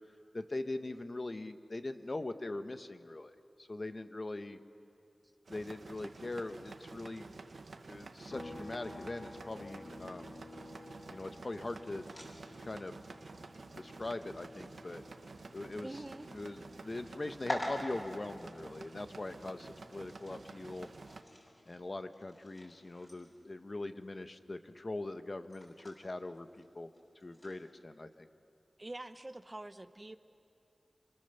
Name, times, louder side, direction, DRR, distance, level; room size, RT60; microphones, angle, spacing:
voice 1, 0.3-3.3 3.6-4.6 5.5-7.3 7.9-10.4 11.1-12.1 12.6-13.0 13.7-15.0 15.5-16.0 16.3-20.9 21.7-26.9 27.2-28.3, left 2 dB, 45° left, 9 dB, 1.1 m, -41 dB
sound 1, 5.5-21.2, right 3 dB, 80° right, 1.3 m, -51 dB
sound 2, 8.3-21.9 22.2-24.4, left 2 dB, 60° left, 2.7 m, -55 dB
sound 3, 8.8-27.6, left 1 dB, 30° left, 6.7 m, -49 dB
voice 2, 15.8-16.3 28.8-30.2, right 2 dB, 30° right, 11 dB, 0.8 m, -45 dB
27.5 x 25.0 x 7.0 m, 2.5 s
wide cardioid pair, 70°, 0 cm